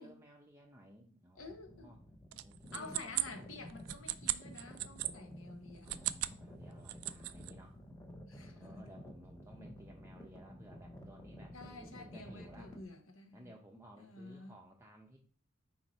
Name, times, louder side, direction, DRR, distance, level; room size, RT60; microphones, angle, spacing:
voice 1, 0.0-2.0 2.4-3.1 4.0-4.3 5.8-7.8 8.3-12.8 13.3-15.2, right 1 dB, 15° right, 0.7 m, -57 dB
voice 2, 1.4-1.9 2.7-5.9 8.3-8.7 11.5-13.5 14.0-14.5, left 3 dB, 65° left, 1.1 m, -50 dB
sound 1, 1.4-12.8, equal, 15° left, 0.9 m, -52 dB
sound 2, 2.3-5.1 5.8-6.4 6.7-7.5, right 16 dB, 90° right, 0.4 m, -37 dB
4.5 x 4.3 x 5.3 m
head